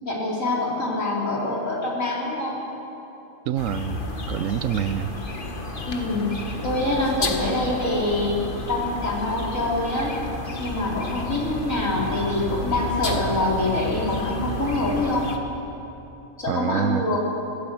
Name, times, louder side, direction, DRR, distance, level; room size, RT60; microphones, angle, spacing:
voice 1, 0.1-2.6 5.9-6.3 6.6-8.4 8.7-10.1 10.6-15.3 16.4-17.2, left 2 dB, 90° left, -3 dB, 4.5 m, -25 dB
voice 2, 3.5-4.0 4.3-5.1 16.5-17.1, right 10 dB, 85° right, 15 dB, 1.1 m, -26 dB
sound 1, 3.6-15.4, left 2 dB, 40° left, 1.7 m, -31 dB
24.5 x 16.0 x 7.7 m, 2.9 s
omnidirectional pair, 1.3 m